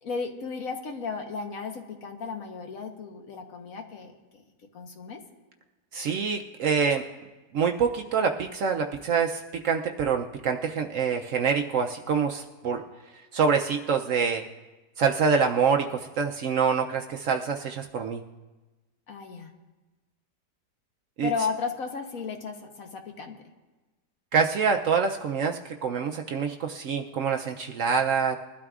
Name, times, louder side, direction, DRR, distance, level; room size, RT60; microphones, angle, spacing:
voice 1, 0.0-4.4 4.7-5.2 19.1-19.5 21.2-23.4, left 5 dB, 60° left, 4 dB, 1.4 m, -34 dB
voice 2, 5.9-7.0 7.5-12.8 13.3-14.4 15.0-18.2 21.2-21.3 24.3-28.4, right 6 dB, 65° right, 4 dB, 0.8 m, -26 dB
21.5 x 12.0 x 2.4 m, 1.2 s
omnidirectional pair, 1.7 m